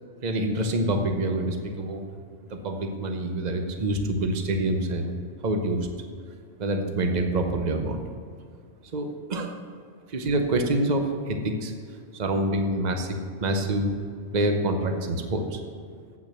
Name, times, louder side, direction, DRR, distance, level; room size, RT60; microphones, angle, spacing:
voice 1, 0.2-2.0 2.5-5.2 5.4-5.9 6.6-8.0 8.9-9.6 10.1-11.7 12.1-13.9 14.3-15.6, right 1 dB, 40° right, 4 dB, 1.0 m, -26 dB
8.7 x 5.9 x 7.7 m, 2.1 s
omnidirectional pair, 1.3 m